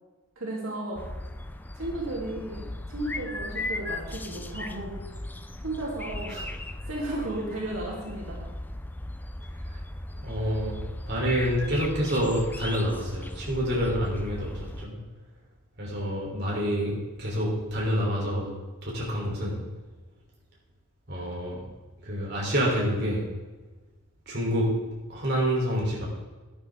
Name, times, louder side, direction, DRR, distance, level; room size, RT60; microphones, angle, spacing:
voice 1, 0.4-1.0 1.7-5.0 5.6-6.4 6.9-8.5 21.5-21.6, right 1 dB, 75° right, -4 dB, 3.2 m, -34 dB
sound 1, 0.9-14.9, left 1 dB, 10° left, 0.4 m, -37 dB
voice 2, 10.2-10.7 11.1-15.0 15.8-18.5 18.8-19.6 21.1-21.6 22.0-23.3 24.3-24.7 25.1-26.1, equal, 50° right, -3 dB, 3.5 m, -27 dB
12.0 x 11.0 x 3.7 m, 1.3 s
head